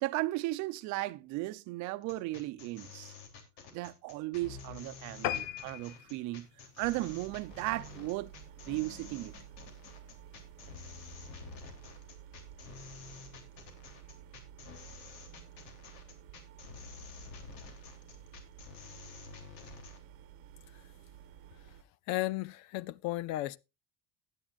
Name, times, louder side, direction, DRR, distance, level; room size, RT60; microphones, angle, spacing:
voice 1, 0.0-3.1 3.7-6.5 6.8-8.3 8.7-9.3, right 19 dB, 55° right, 0.7 m, -36 dB
sound 1, 2.0-20.0, left 5 dB, 85° left, 3.3 m, -50 dB
sound 2, 5.2-8.0 8.5-8.7 9.1-9.2 9.5-9.6 9.8-9.9, left 12 dB, 65° left, 0.9 m, -39 dB
sound 3, 6.8-21.8, right 10 dB, 40° right, 1.1 m, -53 dB
voice 2, 22.1-23.6, left 17 dB, 50° left, 0.5 m, -34 dB
16.0 x 10.0 x 2.5 m
cardioid pair, 175°, 35 cm